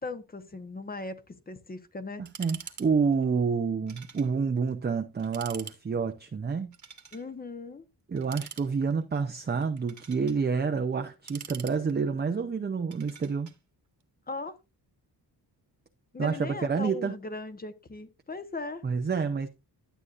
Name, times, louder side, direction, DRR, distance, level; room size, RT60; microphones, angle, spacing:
voice 1, 0.0-2.2 7.1-7.8 14.3-14.5 16.1-18.8, left 3 dB, 20° left, 1.0 m, -38 dB
voice 2, 2.2-6.7 8.1-13.5 16.2-17.2 18.8-19.5, right 5 dB, 25° right, 0.6 m, -28 dB
sound 1, 2.3-2.9 3.1-3.2 3.9-4.3 4.7-4.8 5.2-5.8 6.7-7.3 8.2-9.0 9.6-10.4 11.0-12.2 12.9-13.6, right 7 dB, 45° right, 1.4 m, -45 dB
12.0 x 8.1 x 2.5 m
wide cardioid pair, 130°, 42 cm